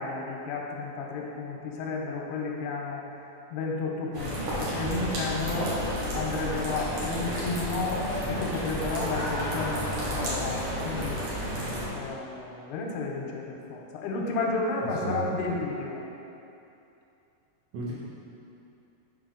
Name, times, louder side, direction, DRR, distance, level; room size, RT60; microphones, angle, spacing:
voice 1, 0.0-3.0 3.5-5.7 6.0-11.2 11.9-16.0, left 3 dB, 85° left, -1 dB, 2.7 m, -32 dB
sound 1, 4.1-11.9, equal, 90° right, 1.4 m, -31 dB
voice 2, 15.0-15.4 17.7-17.9, right 2 dB, 70° right, -7 dB, 2.3 m, -33 dB
6.9 x 5.6 x 3.8 m, 2.8 s
omnidirectional pair, 4.8 m